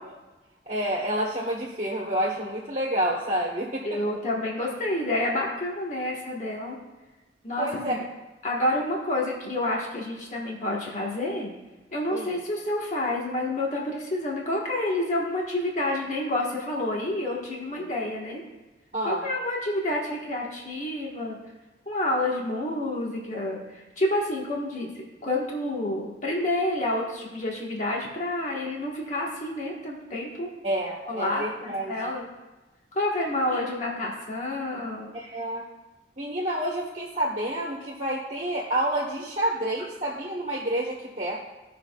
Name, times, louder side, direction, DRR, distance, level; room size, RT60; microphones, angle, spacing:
voice 1, 0.7-4.0 7.6-8.0 12.1-12.3 18.9-19.3 30.6-32.1 35.1-35.7 36.2-41.4, right 1 dB, 40° right, -5 dB, 1.5 m, -29 dB
voice 2, 3.8-6.8 7.4-8.0 8.4-11.5 11.9-18.4 19.0-21.4 21.8-24.9 25.2-30.5 31.1-32.2 32.9-35.1, left 1 dB, 45° left, -2 dB, 1.5 m, -29 dB
17.0 x 5.9 x 2.4 m, 1.1 s
head